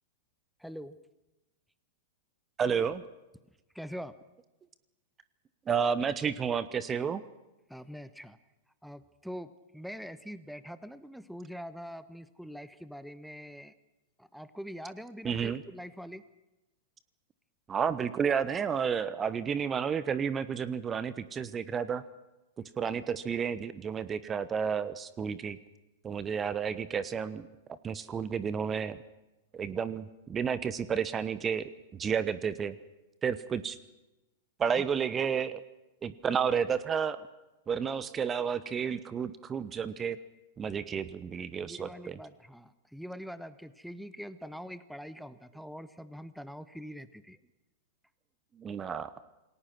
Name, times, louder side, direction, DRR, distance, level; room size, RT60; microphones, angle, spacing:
voice 1, 0.6-1.0 3.7-4.1 7.7-8.4 8.8-13.7 14.2-16.2 34.7-34.9 41.6-47.4, equal, ahead, 14 dB, 1.1 m, -44 dB
voice 2, 2.6-3.0 5.7-7.2 15.2-15.6 17.7-22.0 22.8-25.6 26.0-27.5 27.8-29.0 29.5-32.8 33.2-33.8 34.6-35.6 36.0-37.2 37.7-40.2 40.6-42.2 48.6-49.1, right 7 dB, 20° right, 15 dB, 1.1 m, -31 dB
28.0 x 19.5 x 6.1 m, 1.0 s
figure-of-eight pair, 100°, 0 cm